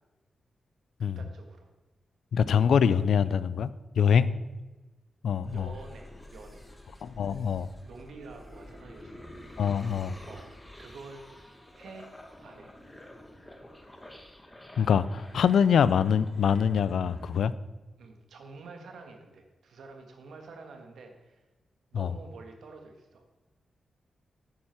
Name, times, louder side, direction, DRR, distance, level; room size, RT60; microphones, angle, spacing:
voice 1, 1.0-1.7 2.4-2.9 4.0-4.2 5.5-6.7 7.8-9.2 10.2-11.3 11.7-12.1 12.4-12.7 18.0-21.5 21.9-23.2, right 3 dB, 85° right, 4 dB, 1.7 m, -48 dB
voice 2, 2.3-3.7 4.0-4.3 5.2-5.7 7.0-7.7 9.6-10.2 14.8-17.5 21.9-22.1, left 7 dB, 80° left, 16 dB, 0.4 m, -24 dB
sound 1, 5.4-17.4, left 1 dB, 10° left, 1.4 m, -49 dB
10.5 x 8.7 x 4.5 m, 1.1 s
wide cardioid pair, 110°, 0 cm